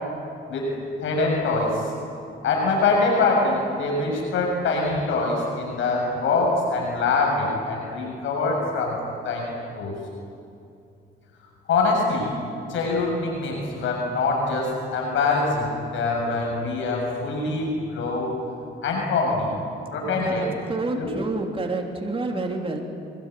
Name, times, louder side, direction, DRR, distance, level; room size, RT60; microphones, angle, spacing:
voice 1, 1.0-1.9 2.4-9.0 9.2-9.9 11.7-12.3 12.7-18.3 18.8-19.5 19.9-20.5 20.9-21.1, left 3 dB, 75° left, 0 dB, 7.0 m, -24 dB
voice 2, 20.0-22.8, right 3 dB, 25° right, 2 dB, 3.4 m, -29 dB
25.0 x 22.5 x 9.4 m, 2.6 s
cardioid pair, 90°, 20 cm